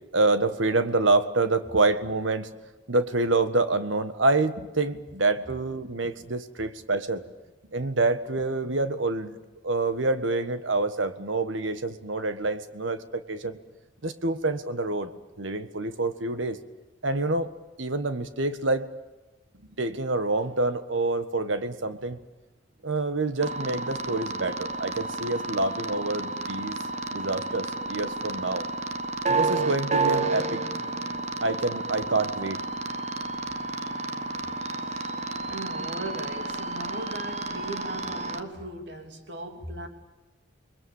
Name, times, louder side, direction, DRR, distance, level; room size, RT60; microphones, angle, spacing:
voice 1, 0.1-2.5 2.9-7.2 7.7-9.4 9.6-13.6 14.0-15.1 15.4-16.6 17.0-17.5 17.8-18.9 19.8-22.2 22.8-26.8 27.1-28.7 29.3-30.6 31.4-32.6, right 2 dB, 85° right, 10 dB, 1.6 m, -27 dB
sound 1, 23.4-38.4, right 3 dB, 35° right, 1.2 m, -31 dB
voice 2, 35.5-39.9, right 1 dB, 60° right, 5 dB, 3.2 m, -38 dB
28.5 x 21.0 x 7.3 m, 1.1 s
head